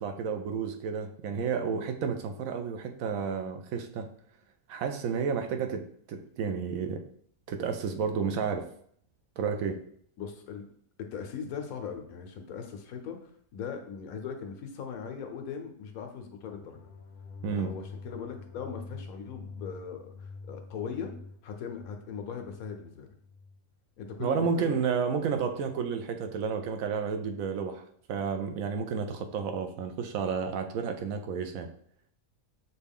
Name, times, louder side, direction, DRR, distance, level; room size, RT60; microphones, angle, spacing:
voice 1, 0.0-4.1 4.7-7.1 7.5-8.7 9.4-9.8 17.4-17.8 24.2-31.7, right 6 dB, 80° right, 6 dB, 1.0 m, -31 dB
voice 2, 10.2-10.6 11.0-16.8 17.5-21.1 21.4-23.1 24.0-24.8, left 6 dB, 85° left, 4 dB, 1.2 m, -39 dB
sound 1, 16.3-23.6, left 4 dB, 65° left, 0.7 m, -46 dB
6.5 x 2.3 x 3.5 m, 0.64 s
omnidirectional pair, 1.4 m